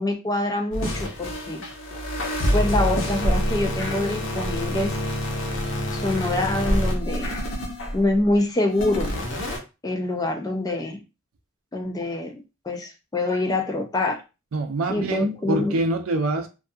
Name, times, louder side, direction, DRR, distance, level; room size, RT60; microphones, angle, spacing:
voice 1, 0.0-1.6 2.5-5.0 5.9-7.3 7.9-9.2 9.8-11.0 11.7-14.2 14.9-15.8, left 2 dB, 15° left, 0.3 m, -25 dB
sound 1, 0.7-8.2 8.7-9.6, equal, 65° left, 0.7 m, -26 dB
voice 2, 14.5-16.5, right 2 dB, 85° right, 0.5 m, -25 dB
2.3 x 2.3 x 2.6 m
head